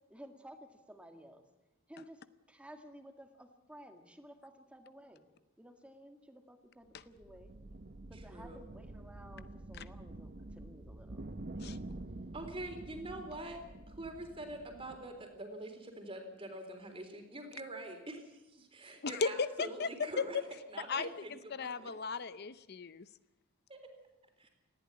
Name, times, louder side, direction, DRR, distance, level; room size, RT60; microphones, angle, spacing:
voice 1, 0.1-1.5 1.9-5.2 5.6-7.5 8.1-11.6, equal, 5° right, 5 dB, 1.9 m, -55 dB
sound 1, 6.9-15.4, right 2 dB, 45° right, 0.9 m, -48 dB
voice 2, 8.1-8.7 12.3-13.6 13.9-20.4 20.7-21.9 23.7-23.9 24.4-24.5, right 1 dB, 25° right, 5 dB, 3.6 m, -45 dB
voice 3, 19.0-19.5 19.8-19.9 20.9-21.1 21.5-23.1, left 4 dB, 50° left, 14 dB, 0.7 m, -36 dB
19.5 x 14.5 x 9.7 m, 1.0 s
head